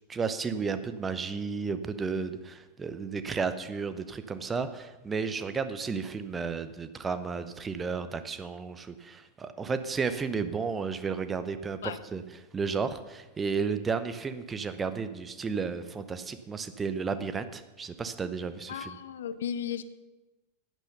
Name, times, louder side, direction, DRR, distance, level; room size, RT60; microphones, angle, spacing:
voice 1, 0.1-12.2 12.5-19.0, right 5 dB, 15° right, 11 dB, 0.8 m, -33 dB
voice 2, 18.7-19.8, left 9 dB, 60° left, 14 dB, 0.6 m, -35 dB
11.5 x 9.2 x 5.5 m, 1.1 s
figure-of-eight pair, 90°, 0 cm